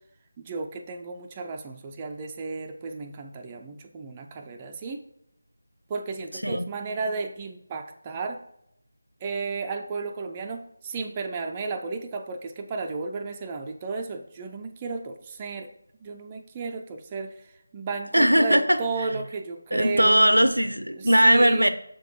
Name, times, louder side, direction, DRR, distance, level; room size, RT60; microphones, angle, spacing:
voice 1, 0.4-5.0 5.9-8.4 9.2-15.7 16.0-17.4 17.7-20.2 21.0-21.7, right 4 dB, 15° right, 3 dB, 0.4 m, -33 dB
voice 2, 18.1-19.1 19.7-21.7, equal, 85° right, 11 dB, 0.6 m, -20 dB
6.5 x 3.8 x 4.5 m, 0.74 s
figure-of-eight pair, 165°, 0 cm